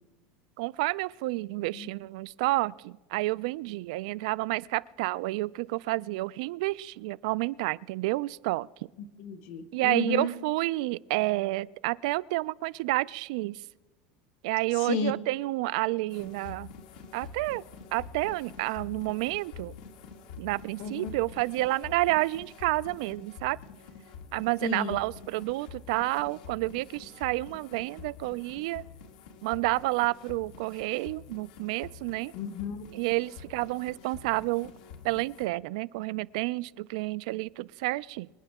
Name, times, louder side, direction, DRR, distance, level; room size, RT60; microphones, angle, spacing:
voice 1, 0.6-8.7 9.7-13.6 14.4-16.7 17.1-17.6 17.9-19.8 20.4-23.6 24.3-28.8 29.4-32.3 32.9-34.7 35.0-38.3, right 20 dB, 65° right, 20 dB, 0.3 m, -30 dB
voice 2, 9.2-10.3 14.8-15.1 20.8-21.0 24.6-25.0 32.3-32.9, left 5 dB, 55° left, 10 dB, 1.2 m, -32 dB
sound 1, 16.1-35.5, left 6 dB, 80° left, 1.9 m, -47 dB
26.0 x 9.8 x 3.6 m, 1.2 s
supercardioid pair, 165°, 4 cm